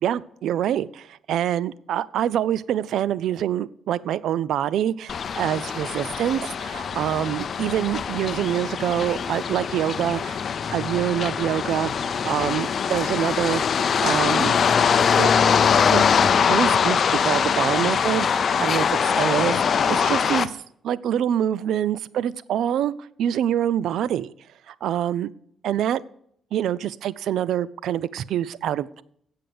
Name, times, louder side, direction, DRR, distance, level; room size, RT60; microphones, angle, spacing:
voice 1, 0.0-10.4 10.7-13.6 14.0-14.6 15.2-15.5 15.9-16.0 16.5-22.9 23.2-24.3 24.7-25.3 25.6-26.0 26.5-29.0, right 10 dB, 75° right, 19 dB, 0.4 m, -25 dB
sound 1, 5.1-20.5, left 7 dB, 50° left, 0.5 m, -22 dB
8.4 x 6.6 x 7.8 m, 0.69 s
cardioid pair, 90°, 0 cm